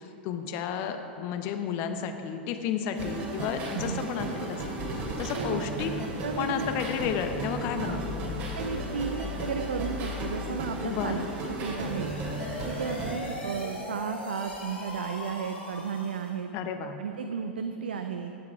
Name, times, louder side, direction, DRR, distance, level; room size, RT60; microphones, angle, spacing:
voice 1, 0.0-4.6 4.9-5.9 6.4-8.4 10.8-11.3 16.5-17.0, left 7 dB, 40° left, 7 dB, 0.9 m, -32 dB
sound 1, 2.9-13.1, right 1 dB, 40° right, 2.5 m, -35 dB
voice 2, 3.7-4.0 5.3-5.8 6.2-6.7 7.8-8.0 8.5-11.2 11.6-12.1 12.7-16.5 17.0-18.3, right 6 dB, 65° right, 6 dB, 0.5 m, -34 dB
sound 2, 5.8-15.8, left 8 dB, 10° left, 2.2 m, -43 dB
sound 3, 11.6-16.4, left 1 dB, 75° left, 3.3 m, -40 dB
17.0 x 7.3 x 4.7 m, 2.8 s
figure-of-eight pair, 95°, 6 cm